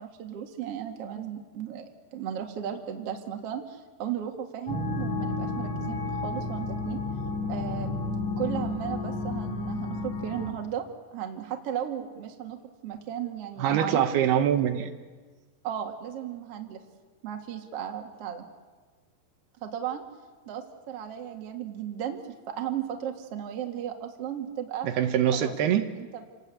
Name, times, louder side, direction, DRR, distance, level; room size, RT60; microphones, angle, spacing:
voice 1, 0.0-1.8 2.1-7.0 7.5-8.0 8.4-10.9 11.1-14.1 15.6-16.8 17.2-18.4 19.6-20.0 20.5-24.9 25.3-25.5 26.0-26.3, right 9 dB, 45° right, 4 dB, 2.3 m, -35 dB
sound 1, 4.7-10.5, left 3 dB, 50° left, 2.8 m, -31 dB
voice 2, 13.6-14.9 24.8-25.8, right 9 dB, 75° right, 7 dB, 3.0 m, -24 dB
28.5 x 19.5 x 8.4 m, 1.4 s
omnidirectional pair, 4.8 m